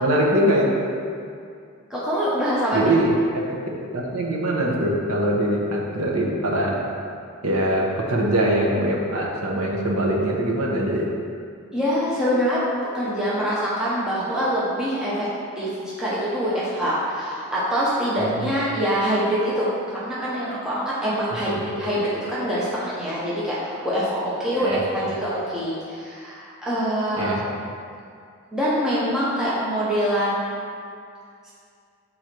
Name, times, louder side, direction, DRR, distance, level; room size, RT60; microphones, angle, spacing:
voice 1, 0.0-0.7 2.7-3.2 3.8-6.8 7.4-11.1 18.2-18.5 21.5-21.8 24.6-25.1 27.2-27.4, right 1 dB, 80° right, -2 dB, 0.9 m, -23 dB
voice 2, 1.9-2.9 11.7-12.6 12.9-15.3 15.6-27.4 28.5-30.6 31.4-31.5, equal, 5° right, -9 dB, 0.9 m, -24 dB
6.2 x 4.0 x 4.4 m, 2.4 s
head